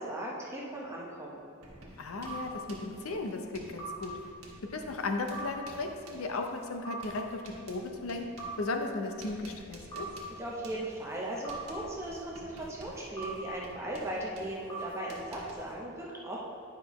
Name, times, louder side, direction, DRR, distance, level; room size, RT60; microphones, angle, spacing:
voice 1, 0.0-1.4 10.4-16.4, right 1 dB, 10° right, -4 dB, 0.7 m, -38 dB
Writing, 1.6-15.7, right 1 dB, 75° right, 1.3 m, -52 dB
voice 2, 2.0-4.1 4.7-10.1, left 3 dB, 65° left, 4 dB, 0.6 m, -36 dB
sound 1, 2.2-2.4 3.8-3.9 5.3-5.5 6.8-7.0 8.4-8.5 9.9-10.1 11.4-11.6 13.2-13.3 14.7-14.8, right 3 dB, 15° left, 0.9 m, -40 dB
10.0 x 5.5 x 3.0 m, 2.5 s
head